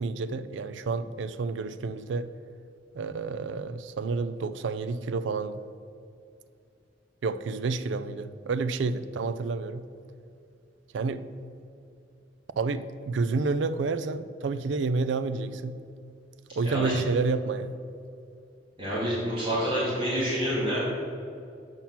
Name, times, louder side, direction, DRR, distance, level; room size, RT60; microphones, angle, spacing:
voice 1, 0.0-2.3 2.9-5.6 7.2-9.9 10.9-11.2 12.6-15.8 16.5-17.8, right 4 dB, 75° right, 13 dB, 0.4 m, -29 dB
voice 2, 18.8-20.8, equal, 25° right, -9 dB, 2.2 m, -28 dB
7.4 x 5.9 x 5.7 m, 2.5 s
head